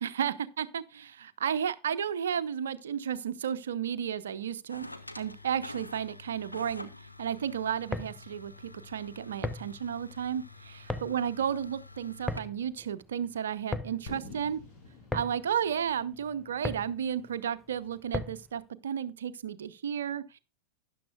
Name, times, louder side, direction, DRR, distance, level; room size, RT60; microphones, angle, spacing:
voice 1, 0.0-4.9 5.2-6.9 7.2-14.6 15.1-20.4, right 8 dB, 65° right, 0.7 m, -33 dB
sound 1, 4.7-12.4, left 2 dB, 85° left, 0.9 m, -48 dB
sound 2, 7.7-18.6, left 2 dB, ahead, 0.7 m, -39 dB
Fireworks, 14.1-17.9, left 3 dB, 40° left, 5.5 m, -49 dB
13.0 x 10.0 x 2.4 m
figure-of-eight pair, 90°, 0 cm